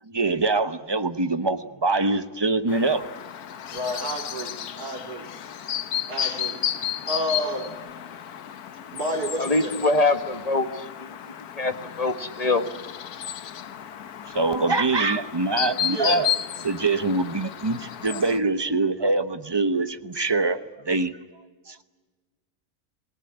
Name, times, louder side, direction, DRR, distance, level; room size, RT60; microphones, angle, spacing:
voice 1, 0.1-3.1 14.3-16.3 16.6-21.2 21.7-21.8, right 3 dB, 20° right, 11 dB, 0.8 m, -24 dB
Chirp tweet, 2.7-18.4, left 9 dB, 75° left, 1.5 m, -33 dB
voice 2, 3.7-5.5 6.1-6.7 7.1-7.8 8.9-9.8 15.8-16.3, equal, 90° right, 3 dB, 4.1 m, -31 dB
voice 3, 9.4-11.1 11.6-12.7, left 2 dB, 25° left, 7 dB, 1.6 m, -24 dB
27.5 x 19.0 x 9.9 m, 1.4 s
omnidirectional pair, 1.6 m